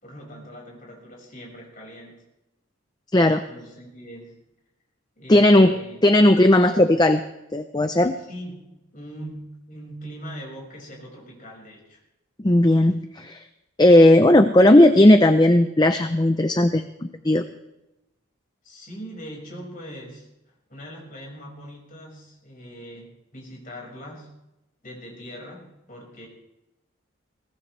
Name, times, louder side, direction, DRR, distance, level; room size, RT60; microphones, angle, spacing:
voice 1, 0.0-2.2 3.5-4.4 5.2-6.0 8.2-12.0 18.6-20.3 20.7-24.3 24.8-26.3, equal, 40° left, -1 dB, 5.6 m, -41 dB
voice 2, 3.1-3.4 5.3-5.7 6.0-7.2 7.5-8.2 12.4-13.4 13.8-17.4, left 1 dB, 20° left, 8 dB, 0.6 m, -16 dB
22.0 x 18.0 x 3.3 m, 0.93 s
head